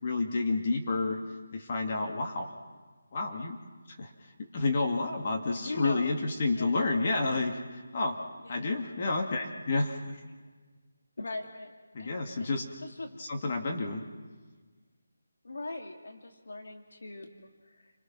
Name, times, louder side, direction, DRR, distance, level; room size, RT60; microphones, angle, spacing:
voice 1, 0.0-1.2 1.5-2.5 3.1-3.6 4.0-4.1 4.4-8.2 8.5-10.2 11.9-12.6 13.2-14.1, left 3 dB, 40° left, 1 dB, 2.4 m, -30 dB
voice 2, 5.4-6.1 6.5-6.9 8.4-8.8 11.2-11.7 12.0-13.1 15.4-17.9, left 2 dB, 70° left, 3 dB, 2.5 m, -41 dB
29.5 x 22.0 x 6.0 m, 1.4 s
figure-of-eight pair, 160°, 0 cm